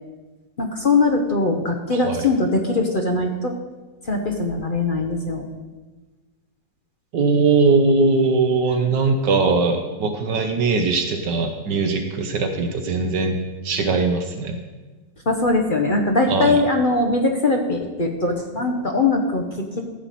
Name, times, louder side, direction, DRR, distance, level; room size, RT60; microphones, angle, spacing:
voice 1, 0.6-3.5 4.0-5.4 15.3-19.8, left 2 dB, 45° left, 3 dB, 0.6 m, -21 dB
voice 2, 1.9-2.3 7.1-14.6 16.3-16.6, right 4 dB, 70° right, 5 dB, 1.5 m, -20 dB
14.5 x 7.6 x 4.1 m, 1.3 s
omnidirectional pair, 2.0 m